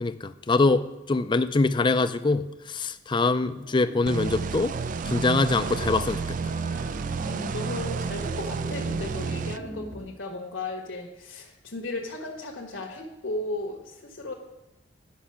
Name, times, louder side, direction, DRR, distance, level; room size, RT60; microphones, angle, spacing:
voice 1, 0.0-2.5 2.7-4.7 5.1-6.2, left 3 dB, 25° left, 11 dB, 0.4 m, -24 dB
sound 1, 3.5-10.0, equal, 65° right, 2.4 m, -41 dB
sound 2, 4.1-9.6, right 5 dB, 45° right, 0.3 m, -31 dB
voice 2, 7.2-14.3, left 2 dB, 85° left, -1 dB, 1.4 m, -35 dB
10.0 x 5.7 x 5.7 m, 0.97 s
head